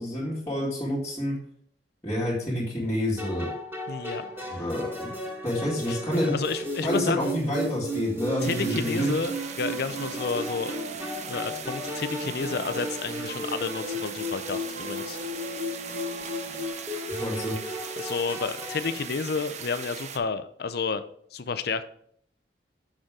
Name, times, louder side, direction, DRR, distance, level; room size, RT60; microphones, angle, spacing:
voice 1, 0.0-1.4 2.0-3.5 4.5-5.1 5.4-6.3 6.8-9.1 17.1-17.6, left 1 dB, 15° left, -10 dB, 2.1 m, -28 dB
sound 1, 3.2-19.1, equal, 15° right, 2.2 m, -35 dB
voice 2, 3.9-4.7 5.9-7.4 8.4-10.8 11.3-15.2 18.0-21.0 21.3-21.8, left 4 dB, 60° left, 12 dB, 0.5 m, -31 dB
sound 2, 3.9-16.7, right 2 dB, 75° right, 1.2 m, -46 dB
sound 3, 8.4-20.2, right 7 dB, 40° right, 0.5 m, -40 dB
6.5 x 6.3 x 3.6 m, 0.63 s
head